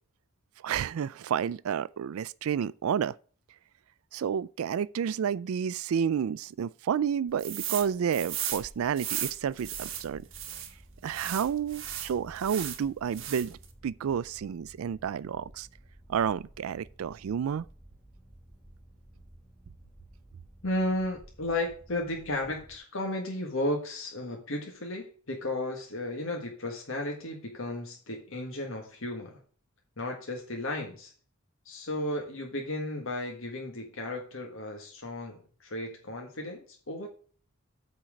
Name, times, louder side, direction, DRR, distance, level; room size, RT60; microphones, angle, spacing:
voice 1, 0.6-3.2 4.1-10.3 11.0-13.6 13.8-15.7 16.1-17.7, right 8 dB, 80° right, 0.4 m, -30 dB
sound 1, 7.4-7.9 8.1-10.7 11.1-12.8 13.1-13.7, right 10 dB, 60° right, 1.3 m, -36 dB
sound 2, 9.6-22.8, right 1 dB, ahead, 4.0 m, -54 dB
voice 2, 20.6-29.4 30.0-31.1 31.6-37.1, left 1 dB, 65° left, 1.6 m, -34 dB
8.6 x 4.5 x 6.3 m
head